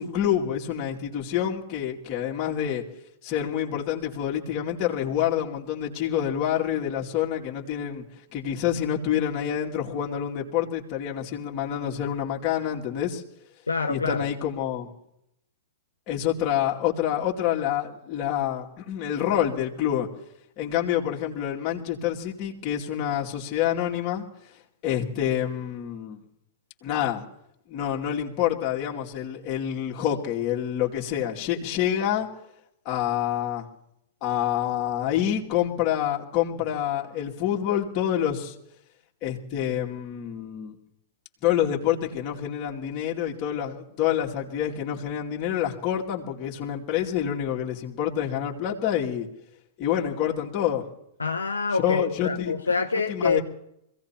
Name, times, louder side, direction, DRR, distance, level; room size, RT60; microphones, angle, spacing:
voice 1, 0.0-2.8 3.2-8.0 8.3-13.2 13.9-14.9 16.1-20.1 20.6-24.2 24.8-26.2 26.8-27.2 27.7-32.3 32.8-33.7 34.2-38.6 39.2-40.8 41.4-49.3 49.8-50.8 51.8-52.6 53.1-53.4, left 10 dB, 40° left, -2 dB, 2.5 m, -27 dB
voice 2, 13.7-14.3 51.2-53.4, left 4 dB, 90° left, 4 dB, 0.8 m, -26 dB
25.5 x 16.5 x 3.0 m, 0.80 s
hypercardioid pair, 110°, 0 cm